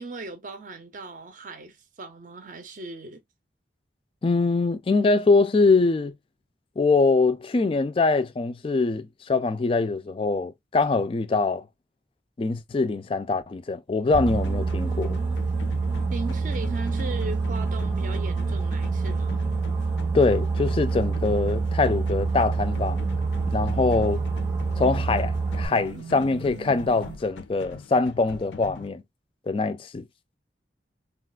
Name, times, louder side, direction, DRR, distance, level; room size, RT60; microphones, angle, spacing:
voice 1, 0.0-3.2 16.1-19.4, right 3 dB, 45° right, 0.5 m, -38 dB
voice 2, 4.2-6.1 6.8-11.6 12.4-15.2 20.1-23.0 23.5-24.2 24.8-29.0 29.5-30.1, left 3 dB, 30° left, 0.3 m, -23 dB
sound 1, 14.1-28.9, left 4 dB, 85° left, 0.5 m, -43 dB
Boat Water vehicle, 14.1-25.7, right 4 dB, 15° right, 0.7 m, -27 dB
sound 2, 14.3-27.2, right 5 dB, 85° right, 0.7 m, -40 dB
3.9 x 2.3 x 2.2 m
head